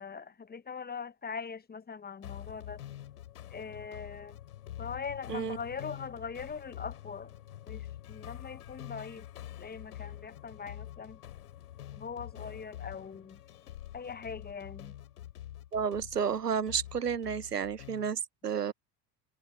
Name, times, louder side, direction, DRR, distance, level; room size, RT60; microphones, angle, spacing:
voice 1, 0.0-2.8 3.5-4.4 4.8-7.3 7.7-9.2 9.6-11.2 11.9-13.4 13.9-14.9, left 6 dB, 20° left, 1.3 m, -41 dB
sound 1, 2.2-18.1, left 12 dB, 70° left, 5.6 m, -46 dB
voice 2, 15.7-18.7, right 7 dB, 80° right, 1.5 m, -31 dB
figure-of-eight pair, 65°, 46 cm